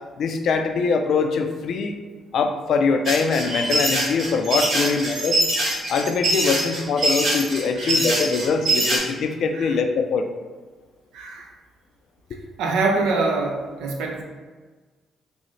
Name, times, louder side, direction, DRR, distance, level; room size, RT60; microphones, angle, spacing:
voice 1, 0.2-1.9 2.3-5.4 5.9-10.2, left 5 dB, 65° left, 5 dB, 0.3 m, -23 dB
sound 1, 3.1-9.0, right 1 dB, 55° right, 1.3 m, -23 dB
voice 2, 12.6-14.2, right 3 dB, 80° right, 2 dB, 0.5 m, -24 dB
3.6 x 2.0 x 3.1 m, 1.3 s
supercardioid pair, 55°, 0 cm